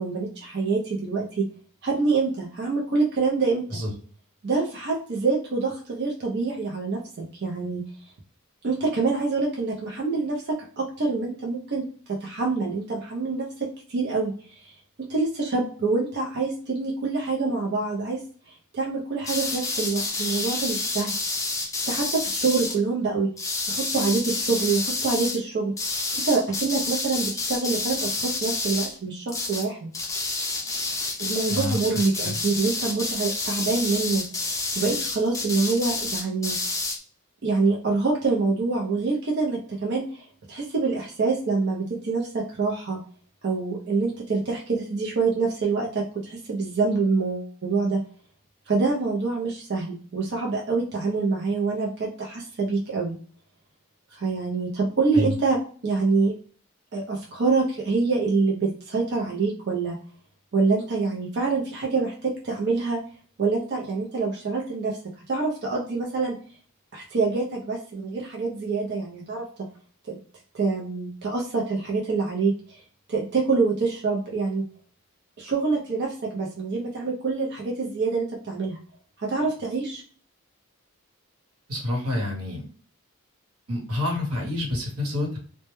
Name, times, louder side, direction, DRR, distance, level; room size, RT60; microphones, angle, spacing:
voice 1, 0.0-1.5 1.8-3.8 4.4-7.0 7.3-7.9 8.6-14.7 15.1-21.1 21.9-23.3 23.7-25.7 26.2-29.9 31.2-36.6 37.4-43.0 43.4-48.0 48.7-53.2 54.1-55.6 55.8-56.3 56.9-60.0 60.5-63.0 63.4-65.0 65.3-66.4 66.9-69.5 70.1-70.2 70.5-72.8 73.1-74.7 75.4-78.8 79.2-80.0, right 4 dB, 50° right, -2 dB, 0.5 m, -26 dB
sound 1, 19.2-22.8 23.4-25.4 25.8-29.0 29.3-29.7 29.9-37.0, left 3 dB, 15° left, 0.4 m, -29 dB
voice 2, 31.5-32.4 55.1-55.3 81.7-82.6 83.7-85.4, left 1 dB, 90° right, -1 dB, 1.0 m, -28 dB
2.1 x 2.1 x 2.9 m, 0.43 s
head